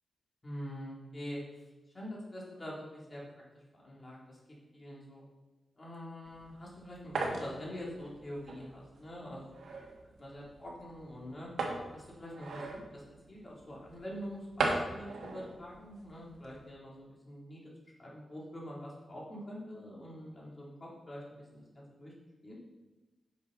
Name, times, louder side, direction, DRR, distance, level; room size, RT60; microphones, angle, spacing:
voice 1, 0.4-1.4 1.9-3.2 3.7-4.4 4.7-5.2 5.8-9.5 10.2-11.5 11.9-13.0 13.3-17.6 18.0-22.1 22.4-22.6, equal, 30° left, -5 dB, 3.1 m, -45 dB
sound 1, 6.2-16.7, right 3 dB, 85° right, 1.6 m, -40 dB
10.0 x 6.8 x 4.0 m, 1.1 s
cardioid pair, 90°, 0 cm